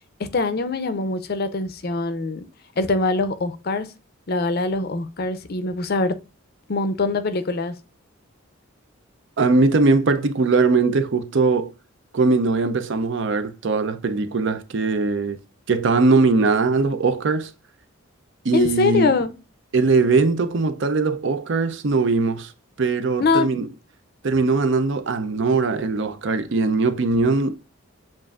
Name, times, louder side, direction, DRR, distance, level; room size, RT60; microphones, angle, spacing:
voice 1, 0.2-2.4 2.8-3.9 4.3-6.1 6.7-7.7 18.5-19.3 23.2-23.7, left 3 dB, 50° left, 0.5 m, -23 dB
voice 2, 9.4-11.7 12.1-15.4 15.7-17.5 18.4-19.2 19.7-22.5 22.8-23.7 24.2-27.6, right 3 dB, 60° right, 0.5 m, -20 dB
7.3 x 2.5 x 2.3 m
head